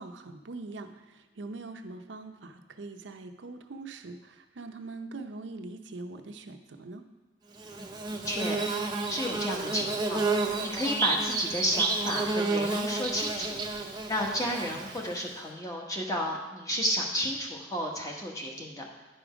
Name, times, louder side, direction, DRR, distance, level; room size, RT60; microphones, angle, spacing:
voice 1, 0.0-7.0, right 3 dB, 80° right, 6 dB, 0.6 m, -42 dB
Bird / Buzz, 7.6-15.3, right 3 dB, 25° right, 0.7 m, -31 dB
voice 2, 7.7-10.2 10.6-13.6 14.1-18.9, equal, 20° left, -1 dB, 1.2 m, -32 dB
10.0 x 5.0 x 5.0 m, 1.2 s
head